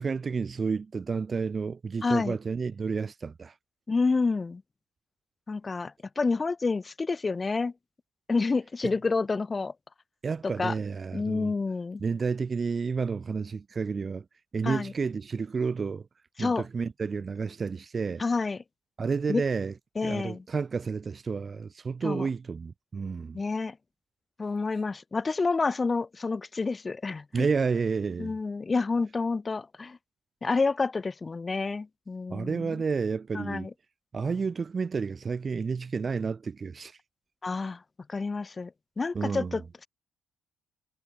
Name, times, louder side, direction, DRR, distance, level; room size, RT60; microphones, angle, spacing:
voice 1, 0.0-3.5 8.8-8.9 10.2-11.5 12.0-14.2 14.5-16.1 16.4-18.2 19.0-19.7 20.0-23.4 27.3-28.3 32.3-33.7 34.1-37.0 39.1-39.6, right 5 dB, 40° right, 1.8 m, -30 dB
voice 2, 2.0-2.4 3.9-4.6 5.5-7.7 8.3-9.7 10.4-10.7 11.1-12.0 14.6-14.9 16.4-16.6 18.2-18.6 19.3-19.4 20.0-20.4 22.0-22.3 23.3-23.8 24.4-27.5 28.2-30.0 30.4-32.8 33.3-33.7 37.4-37.8 38.1-39.9, left 4 dB, 30° left, 6.2 m, -29 dB
hypercardioid pair, 50°, 0 cm